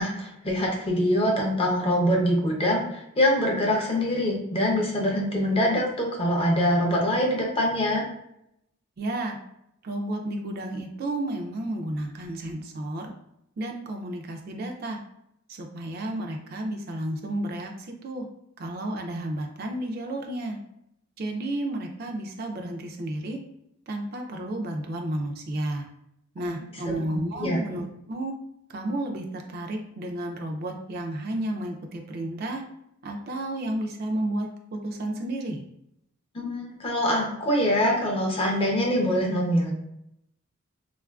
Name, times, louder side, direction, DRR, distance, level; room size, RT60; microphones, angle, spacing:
voice 1, 0.0-8.0 27.1-27.6 36.3-39.7, equal, 25° left, -1 dB, 0.6 m, -24 dB
voice 2, 9.0-9.4 9.8-13.1 13.6-15.0 15.5-18.3 18.6-20.6 21.2-23.4 23.9-25.9 26.3-28.3 28.7-32.6 33.0-35.6, right 1 dB, 45° right, 2 dB, 0.3 m, -32 dB
3.6 x 2.4 x 2.2 m, 0.79 s
head